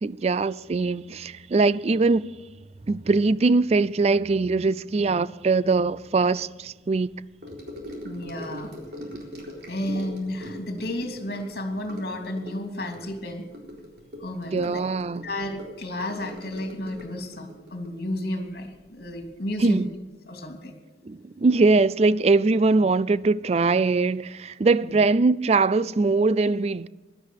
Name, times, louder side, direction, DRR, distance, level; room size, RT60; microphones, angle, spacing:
voice 1, 0.0-2.3 2.9-7.1 14.5-15.2 19.6-19.9 21.0-26.9, right 3 dB, 35° right, 0.4 m, -22 dB
Gurgling / Sink (filling or washing) / Trickle dribble, 7.4-19.1 19.3-19.7 19.9-20.0, equal, 65° right, 4.0 m, -41 dB
voice 2, 8.0-8.7 9.7-13.4 14.2-14.8 15.2-19.8 20.3-20.7 24.8-24.9, left 1 dB, 55° left, 3.0 m, -32 dB
16.5 x 12.0 x 6.5 m
head